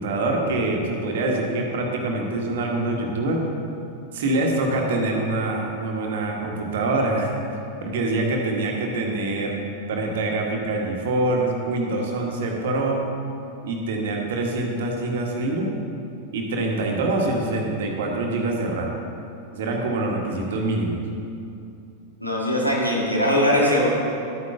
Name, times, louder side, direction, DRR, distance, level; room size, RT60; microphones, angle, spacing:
voice 1, 0.0-3.5 4.1-7.3 7.8-9.5 9.9-13.0 13.6-15.7 16.3-18.9 19.5-21.0, right 2 dB, 55° right, 0 dB, 1.5 m, -25 dB
voice 2, 22.2-23.9, equal, 90° left, -4 dB, 2.1 m, -20 dB
12.5 x 9.3 x 3.8 m, 2.6 s
figure-of-eight pair, 90°, 0 cm